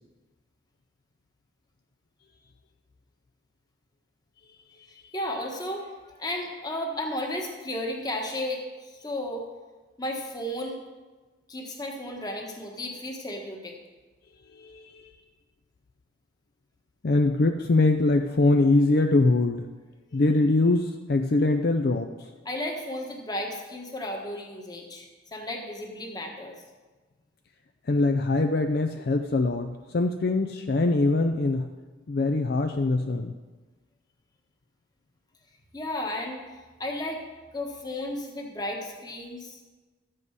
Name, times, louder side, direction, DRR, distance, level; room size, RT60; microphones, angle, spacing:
voice 1, 5.1-9.4 10.0-10.8 11.5-13.7 22.4-26.5 35.7-36.4 36.8-37.2 37.5-39.6, left 1 dB, 20° left, 1 dB, 1.3 m, -33 dB
voice 2, 14.5-15.1 17.0-19.7 20.1-22.3 27.9-31.7 32.1-33.3, left 2 dB, 50° left, 6 dB, 0.5 m, -23 dB
12.5 x 7.7 x 4.8 m, 1.3 s
head